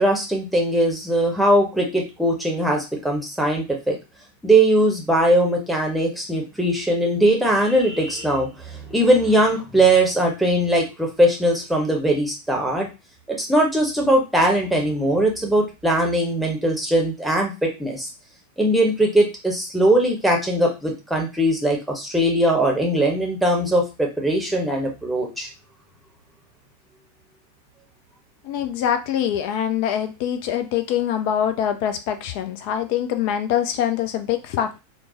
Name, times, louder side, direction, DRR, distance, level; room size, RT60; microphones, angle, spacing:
voice 1, 0.0-4.0 4.4-12.9 13.3-18.1 18.6-25.5, right 1 dB, ahead, -1 dB, 0.9 m, -20 dB
voice 2, 28.4-34.8, left 9 dB, 45° left, 8 dB, 0.4 m, -24 dB
4.5 x 2.1 x 2.5 m, 0.28 s
figure-of-eight pair, 90°, 0 cm